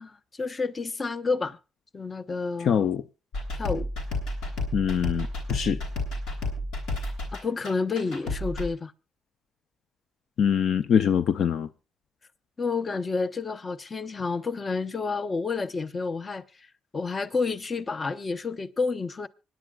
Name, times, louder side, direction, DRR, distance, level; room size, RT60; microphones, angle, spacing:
voice 1, 0.0-1.6 1.9-2.8 3.6-3.9 7.4-8.9 12.6-16.4 16.9-19.3, left 4 dB, 35° left, 0.8 m, -29 dB
voice 2, 2.6-3.0 4.7-5.8 10.4-11.7, left 8 dB, 65° left, 0.5 m, -24 dB
sound 1, 3.3-8.7, left 2 dB, 90° left, 3.3 m, -31 dB
25.5 x 10.5 x 2.4 m
cardioid pair, 90°, 0 cm